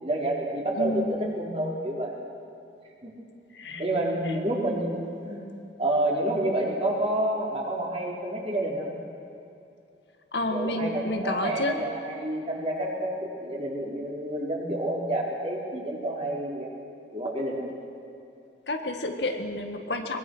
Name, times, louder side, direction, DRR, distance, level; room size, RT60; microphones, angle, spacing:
voice 1, 0.0-2.2 3.0-3.1 3.8-5.0 5.2-5.4 5.8-8.9 10.5-16.7 17.1-17.7, right 1 dB, 35° right, -2 dB, 3.9 m, -29 dB
voice 2, 0.7-1.3 3.5-3.9 4.3-4.4 10.3-11.8 18.7-20.2, left 1 dB, 65° left, 4 dB, 1.8 m, -30 dB
23.0 x 21.5 x 6.3 m, 2.7 s
head